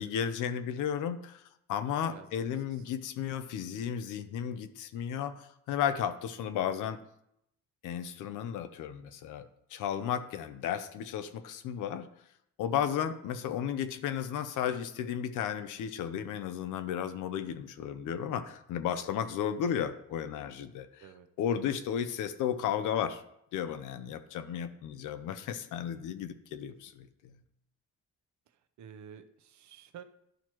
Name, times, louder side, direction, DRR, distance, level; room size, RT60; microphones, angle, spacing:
voice 1, 0.0-1.4 1.7-7.0 7.8-12.1 12.6-21.0 21.4-23.2 23.5-27.1, left 9 dB, 85° left, 10 dB, 0.7 m, -34 dB
voice 2, 2.1-2.8 21.0-21.6 28.8-30.0, right 8 dB, 70° right, 10 dB, 0.7 m, -51 dB
11.5 x 4.4 x 3.0 m, 0.76 s
cardioid pair, 90°, 30 cm